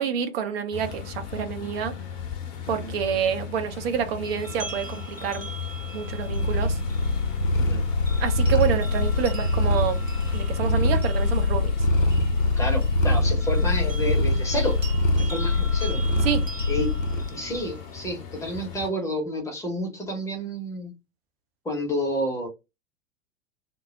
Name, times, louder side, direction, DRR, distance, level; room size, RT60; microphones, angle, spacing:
voice 1, 0.0-1.9 2.7-5.5 5.9-6.8 8.2-10.0 10.3-11.8 16.2-16.5, right 8 dB, 50° right, 0.6 m, -28 dB
sound 1, 0.7-18.9, left 7 dB, 40° left, 0.7 m, -38 dB
voice 2, 2.7-3.0 7.6-7.8 12.6-14.8 15.2-16.0 16.7-20.9 21.6-22.5, equal, 10° left, 0.8 m, -30 dB
sound 2, 4.2-17.9, right 2 dB, 90° right, 0.7 m, -43 dB
Purr, 6.0-17.3, left 2 dB, 90° left, 0.6 m, -23 dB
2.2 x 2.0 x 3.7 m
figure-of-eight pair, 90°, 39 cm